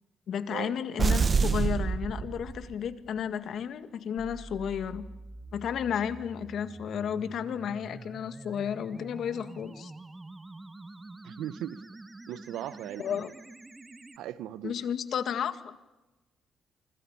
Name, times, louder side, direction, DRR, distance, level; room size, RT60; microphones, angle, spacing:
voice 1, 0.3-5.1 5.5-9.9 13.0-13.3 14.6-15.8, left 8 dB, 65° left, 1.9 m, -32 dB
sound 1, 1.0-2.9, right 5 dB, 35° right, 0.8 m, -26 dB
sound 2, 4.2-14.2, right 2 dB, 20° right, 1.2 m, -46 dB
voice 2, 11.2-11.8 12.3-13.3 14.2-14.7, right 12 dB, 85° right, 1.0 m, -38 dB
26.5 x 25.5 x 7.2 m
cardioid pair, 90°, 0 cm